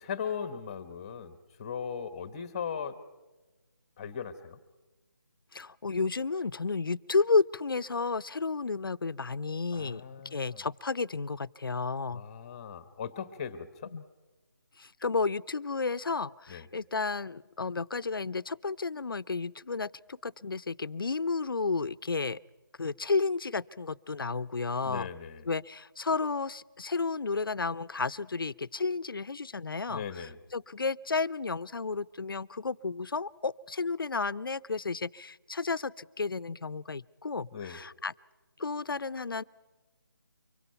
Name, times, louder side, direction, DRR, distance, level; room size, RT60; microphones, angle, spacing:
voice 1, 0.0-3.0 4.0-4.6 9.7-10.6 12.1-13.9 16.5-16.7 24.8-25.5 29.9-30.4 37.5-37.8, left 7 dB, 15° left, 12 dB, 1.1 m, -38 dB
voice 2, 5.5-10.0 10.3-12.2 13.9-14.0 14.8-22.4 22.8-25.1 25.5-38.1 38.6-39.4, left 4 dB, 80° left, 16 dB, 0.6 m, -32 dB
24.5 x 24.0 x 5.7 m, 1.2 s
figure-of-eight pair, 170°, 11 cm